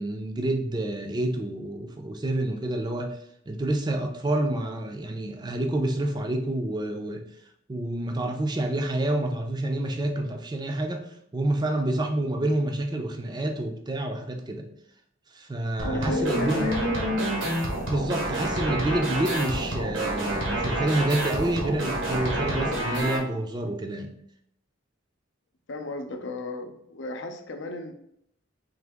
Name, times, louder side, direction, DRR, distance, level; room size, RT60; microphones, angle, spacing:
voice 1, 0.0-3.2 3.5-7.2 7.7-14.7 15.3-16.7 17.9-24.1, right 1 dB, 20° right, 4 dB, 0.4 m, -28 dB
sound 1, 15.8-23.2, right 1 dB, 80° right, 1.1 m, -28 dB
voice 2, 15.9-17.5 25.7-27.9, left 2 dB, 65° left, 5 dB, 0.6 m, -35 dB
3.9 x 2.8 x 3.5 m, 0.73 s
head